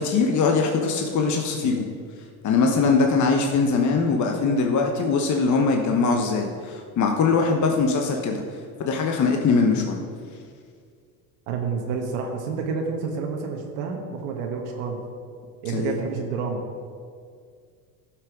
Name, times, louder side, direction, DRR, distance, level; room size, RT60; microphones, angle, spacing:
voice 1, 0.0-1.9 2.4-8.4 8.8-10.0 15.7-15.9, left 4 dB, 40° left, 2 dB, 1.1 m, -21 dB
voice 2, 11.5-15.0 15.6-16.6, right 5 dB, 85° right, 1 dB, 1.3 m, -29 dB
12.0 x 6.0 x 4.9 m, 2.1 s
supercardioid pair, 95°, 46 cm